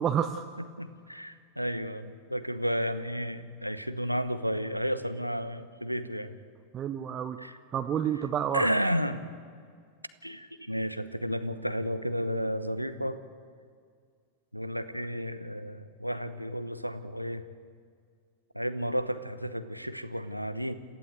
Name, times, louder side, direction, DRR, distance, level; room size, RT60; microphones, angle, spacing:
voice 1, 0.0-0.5 6.7-7.4 7.7-8.7, right 9 dB, 30° right, 7 dB, 0.9 m, -29 dB
voice 2, 0.6-6.3 7.4-7.6 8.5-9.3 10.2-13.2 14.5-17.4 18.5-20.8, equal, 90° right, 12 dB, 1.0 m, -32 dB
27.5 x 15.5 x 8.0 m, 2.1 s
figure-of-eight pair, 90°, 0 cm